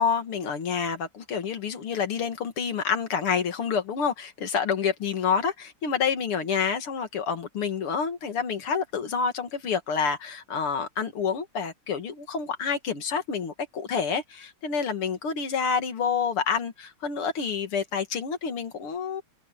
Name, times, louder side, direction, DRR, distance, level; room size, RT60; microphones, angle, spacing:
voice 1, 0.0-19.2, left 6 dB, 80° left, 2.9 m, -28 dB
omnidirectional pair, 2.4 m